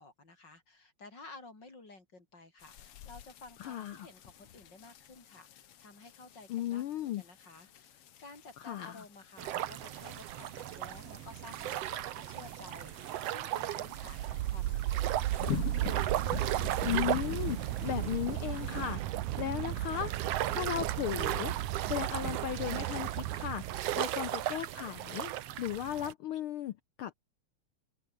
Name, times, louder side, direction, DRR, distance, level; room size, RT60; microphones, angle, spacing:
voice 1, 0.0-15.7 18.9-19.0 20.4-20.8 23.9-24.1, left 3 dB, 35° left, 6.8 m, -53 dB
sound 1, 2.6-19.0, left 10 dB, 55° left, 2.1 m, -46 dB
voice 2, 3.6-4.1 6.5-7.2 8.6-9.0 16.8-20.1 20.5-21.5 21.8-25.3 25.6-27.1, left 11 dB, 85° left, 1.1 m, -36 dB
sound 2, 9.4-26.1, right 13 dB, 65° right, 1.9 m, -37 dB
sound 3, 13.9-24.7, right 15 dB, 85° right, 2.4 m, -36 dB
omnidirectional pair, 3.4 m